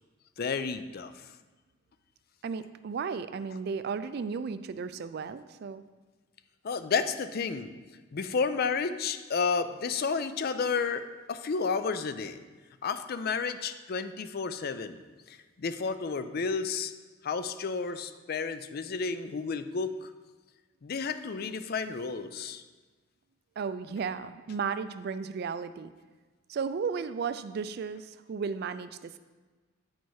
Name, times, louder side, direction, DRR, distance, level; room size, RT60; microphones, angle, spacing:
voice 1, 0.4-1.2 6.6-7.7 8.1-12.4 12.8-15.0 15.3-16.9 17.2-20.1 20.8-22.6, left 5 dB, 50° left, 11 dB, 0.4 m, -31 dB
voice 2, 2.4-5.8 23.6-25.9 26.5-29.2, right 5 dB, 50° right, 13 dB, 0.3 m, -34 dB
9.3 x 4.4 x 4.6 m, 1.3 s
head